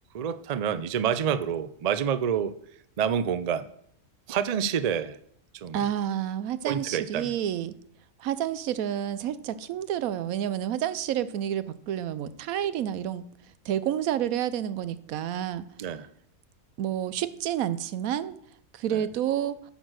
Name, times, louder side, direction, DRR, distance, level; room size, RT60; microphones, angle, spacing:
voice 1, 0.1-2.5 3.0-3.7 4.3-5.2 5.5-5.9 6.6-7.3 15.8-16.1 18.9-19.0, right 8 dB, 70° right, 14 dB, 0.3 m, -28 dB
voice 2, 5.7-7.7 8.2-13.3 13.6-15.6 16.8-18.3 18.7-19.6, right 10 dB, 90° right, 15 dB, 1.1 m, -29 dB
9.0 x 6.2 x 6.3 m, 0.67 s
omnidirectional pair, 1.4 m